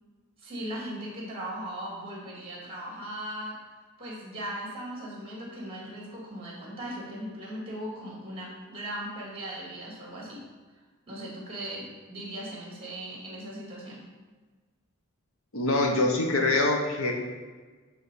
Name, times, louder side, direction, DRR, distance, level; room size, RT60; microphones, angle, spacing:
voice 1, 0.4-3.6 4.0-10.4 11.1-14.0, right 1 dB, 25° right, -3 dB, 2.2 m, -38 dB
voice 2, 15.5-17.1, left 2 dB, 75° left, 1 dB, 1.2 m, -24 dB
10.5 x 3.7 x 4.8 m, 1.4 s
head